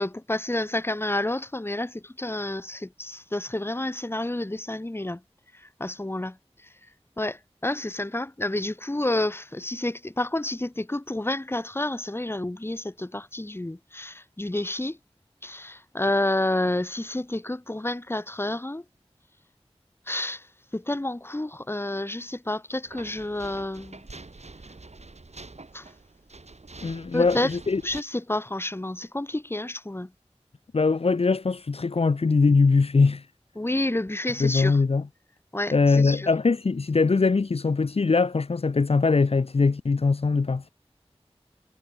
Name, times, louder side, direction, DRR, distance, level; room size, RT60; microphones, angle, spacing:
voice 1, 0.0-5.2 5.6-6.4 7.2-15.0 15.4-18.8 20.1-20.4 20.7-24.0 25.7-25.9 27.1-27.5 27.8-30.1 33.6-34.8 35.5-36.3, left 1 dB, 20° left, 0.9 m, -29 dB
sound 1, 22.8-28.0, right 3 dB, 90° right, 5.5 m, -45 dB
voice 2, 26.8-27.8 30.7-33.2 34.4-35.0 35.7-40.7, left 4 dB, 65° left, 0.5 m, -22 dB
wide cardioid pair, 50°, 11 cm